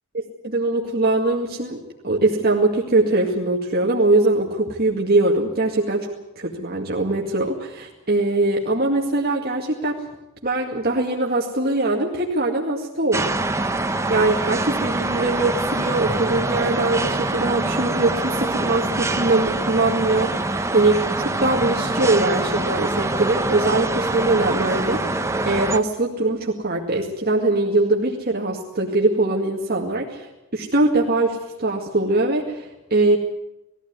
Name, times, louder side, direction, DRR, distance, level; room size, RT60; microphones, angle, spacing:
voice 1, 0.1-1.8 2.0-10.0 10.4-13.3 14.1-30.3 30.5-33.2, right 2 dB, 50° right, -2 dB, 2.1 m, -22 dB
sound 1, 13.1-25.8, right 2 dB, 15° right, 0.8 m, -24 dB
20.0 x 15.5 x 9.5 m, 0.96 s
head